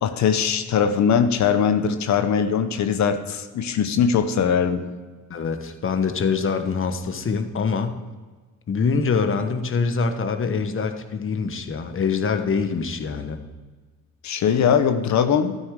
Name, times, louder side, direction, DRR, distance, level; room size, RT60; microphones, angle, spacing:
voice 1, 0.0-4.9 14.2-15.6, left 7 dB, 65° left, 9 dB, 0.9 m, -21 dB
voice 2, 5.3-8.0 8.7-13.4, left 5 dB, 45° left, 8 dB, 1.2 m, -24 dB
12.5 x 9.6 x 4.8 m, 1.4 s
cardioid pair, 90°, 30 cm